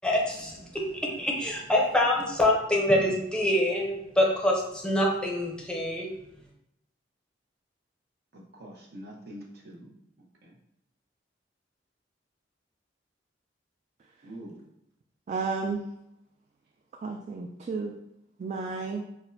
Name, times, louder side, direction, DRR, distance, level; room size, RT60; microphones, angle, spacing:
voice 1, 0.0-6.1, left 1 dB, 5° left, -2 dB, 0.7 m, -25 dB
voice 2, 8.3-9.9 10.4-10.6 14.2-14.6, right 1 dB, 60° right, 0 dB, 0.8 m, -45 dB
voice 3, 15.3-15.8 17.0-17.9 18.4-19.0, right 4 dB, 40° right, 3 dB, 0.3 m, -32 dB
5.9 x 2.1 x 2.6 m, 0.83 s
head